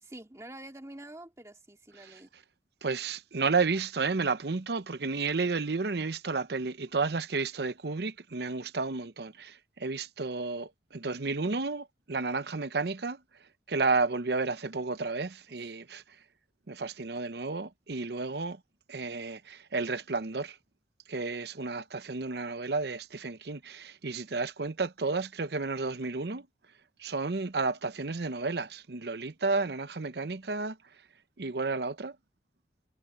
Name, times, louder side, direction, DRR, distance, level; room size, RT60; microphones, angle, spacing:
voice 1, 0.0-2.3, right 1 dB, 15° right, 2.2 m, -47 dB
voice 2, 2.8-13.2 13.7-16.0 16.7-18.6 18.9-20.5 21.1-26.5 27.0-30.8 31.4-32.1, right 4 dB, 60° right, 0.8 m, -32 dB
head